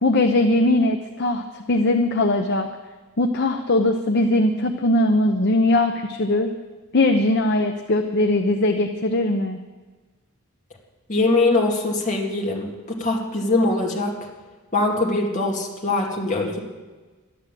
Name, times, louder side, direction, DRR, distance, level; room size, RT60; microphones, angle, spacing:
voice 1, 0.0-2.7 3.2-6.5 6.9-9.6, left 2 dB, 50° left, 5 dB, 0.7 m, -20 dB
voice 2, 11.1-14.2 14.7-16.6, left 2 dB, 35° left, 0 dB, 2.3 m, -22 dB
12.0 x 11.0 x 7.6 m, 1.3 s
head